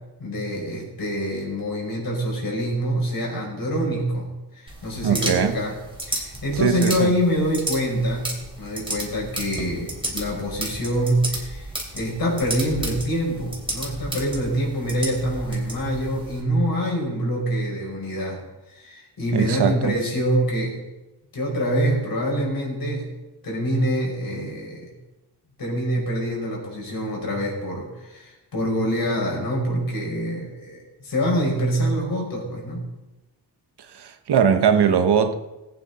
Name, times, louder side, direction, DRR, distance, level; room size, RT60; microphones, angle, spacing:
voice 1, 0.2-5.8 6.1-18.4 18.7-20.8 21.3-23.1 23.4-24.9 25.6-32.8, equal, 55° left, 5.7 m, -25 dB
sound 1, 4.7-16.4, right 1 dB, 10° right, 3.4 m, -33 dB
voice 2, 5.0-5.6 6.6-7.1 19.3-19.9 33.9-35.3, right 7 dB, 70° right, 1.1 m, -20 dB
20.0 x 9.3 x 4.2 m
wide cardioid pair, 135°, 41 cm